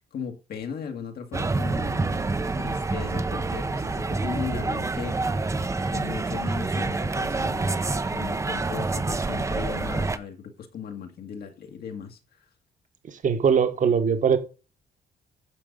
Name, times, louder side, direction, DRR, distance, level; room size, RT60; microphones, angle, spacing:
voice 1, 0.0-2.3 2.6-5.5 5.9-12.2, left 7 dB, 70° left, 2.0 m, -37 dB
sound 1, 1.3-10.2, right 3 dB, 20° right, 0.7 m, -27 dB
voice 2, 13.1-14.4, right 7 dB, 50° right, 1.5 m, -21 dB
9.1 x 6.9 x 5.4 m
cardioid pair, 135°, 16 cm